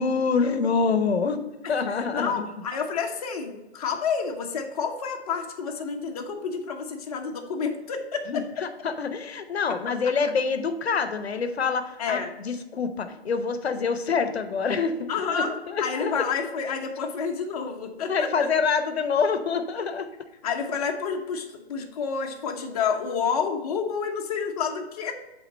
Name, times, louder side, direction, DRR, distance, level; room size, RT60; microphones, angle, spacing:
voice 1, 0.0-1.4 1.7-2.5 8.3-16.2 18.1-20.1, left 5 dB, 70° left, 9 dB, 0.9 m, -26 dB
voice 2, 2.1-8.2 9.7-9.8 12.0-12.3 15.1-15.5 15.8-18.3 20.4-25.1, left 6 dB, 35° left, 3 dB, 0.9 m, -29 dB
7.9 x 3.8 x 4.2 m, 1.1 s
hypercardioid pair, 145°, 32 cm